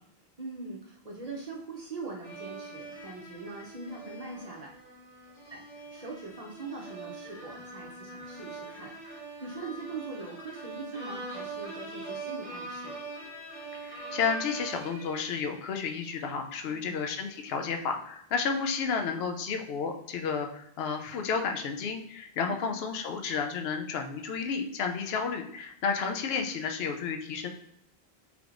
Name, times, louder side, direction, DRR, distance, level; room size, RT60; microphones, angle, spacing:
voice 1, 0.4-4.7 5.5-13.0 16.7-17.1 22.5-22.7 26.0-26.2, right 3 dB, 45° right, -2 dB, 0.6 m, -42 dB
sound 1, 2.2-15.9, right 3 dB, 20° right, 1.4 m, -43 dB
voice 2, 13.7-27.5, left 5 dB, 75° left, 5 dB, 0.8 m, -32 dB
4.6 x 3.4 x 2.5 m, 0.75 s
omnidirectional pair, 1.0 m